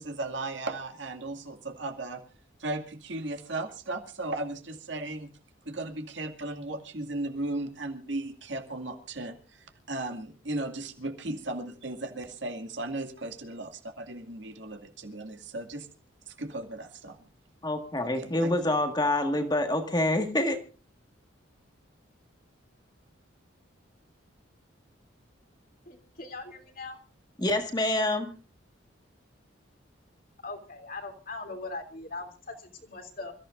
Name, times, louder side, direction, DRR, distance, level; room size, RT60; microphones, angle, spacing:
voice 1, 0.0-2.2 2.6-5.3 5.7-15.9 16.3-17.2 18.0-18.8, right 2 dB, 65° right, 5 dB, 2.3 m, -36 dB
voice 2, 17.6-20.6 27.4-28.3, left 1 dB, 20° left, 5 dB, 1.7 m, -26 dB
voice 3, 25.9-27.0 30.4-33.3, left 3 dB, 45° left, 4 dB, 3.0 m, -40 dB
27.5 x 14.5 x 2.5 m, 0.34 s
head